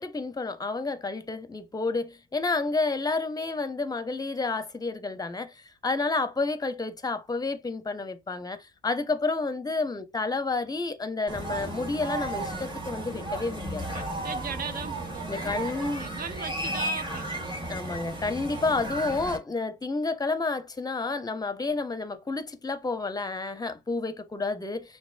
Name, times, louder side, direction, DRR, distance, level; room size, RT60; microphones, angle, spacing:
voice 1, 0.0-13.8 15.3-16.1 17.7-25.0, left 3 dB, 20° left, 0.7 m, -30 dB
sound 1, 11.3-19.4, right 1 dB, 25° right, 1.8 m, -34 dB
voice 2, 13.9-17.6, right 6 dB, 45° right, 0.7 m, -38 dB
6.0 x 2.7 x 2.5 m
cardioid pair, 90°, 20 cm